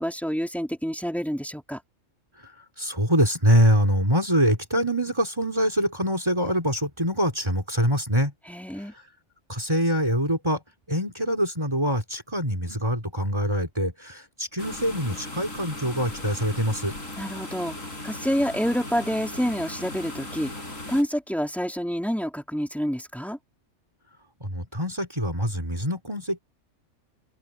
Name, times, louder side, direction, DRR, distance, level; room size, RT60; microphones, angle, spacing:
voice 1, 0.0-1.8 8.5-8.9 17.2-17.8 18.0-23.4, equal, ahead, 3.2 m, -28 dB
voice 2, 2.8-8.3 9.5-10.6 10.9-16.9 24.4-26.4, equal, 20° right, 3.8 m, -24 dB
sound 1, 14.6-21.0, left 1 dB, 80° left, 6.6 m, -37 dB
open air
omnidirectional pair, 1.4 m